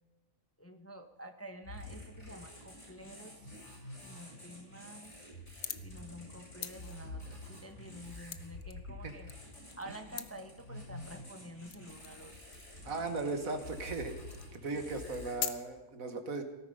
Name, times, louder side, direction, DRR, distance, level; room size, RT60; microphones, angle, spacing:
voice 1, 0.6-3.5 4.0-5.1 5.8-9.3 9.7-12.4, equal, 10° left, 6 dB, 0.8 m, -49 dB
sound 1, 1.6-15.3, left 1 dB, 60° left, 8.1 m, -48 dB
sound 2, 5.5-6.0 6.3-8.8 9.1-9.9 10.2-10.3 11.0-11.1 11.7-12.2 12.5-12.8 13.4-13.5 13.9-14.0 14.3-14.7 15.0-15.5, left 9 dB, 80° left, 1.3 m, -42 dB
voice 2, 12.9-14.1 14.5-16.4, right 3 dB, 80° right, 7 dB, 1.9 m, -37 dB
18.0 x 13.5 x 5.4 m, 1.1 s
omnidirectional pair, 1.4 m